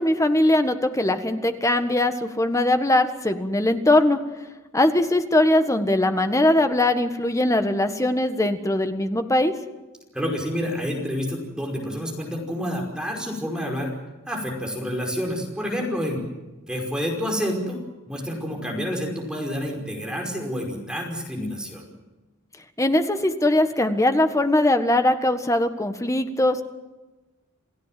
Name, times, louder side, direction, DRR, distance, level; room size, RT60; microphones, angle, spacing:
voice 1, 0.0-4.2 4.7-9.5 22.8-26.6, left 1 dB, 15° left, 8 dB, 1.6 m, -21 dB
voice 2, 10.1-13.9 14.3-16.2 16.7-17.8 18.1-21.9, equal, 5° right, 0 dB, 5.3 m, -28 dB
29.0 x 17.0 x 7.7 m, 1.1 s
head